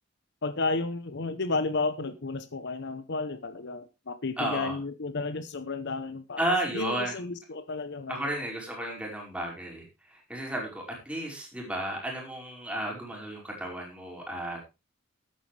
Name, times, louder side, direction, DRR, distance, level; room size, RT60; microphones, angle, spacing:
voice 1, 0.4-6.5 6.7-8.3, left 3 dB, 55° left, 12 dB, 0.8 m, -32 dB
voice 2, 4.4-4.8 6.4-7.2 8.1-14.7, right 1 dB, 5° right, -1 dB, 5.2 m, -33 dB
14.0 x 11.5 x 3.3 m, 0.27 s
head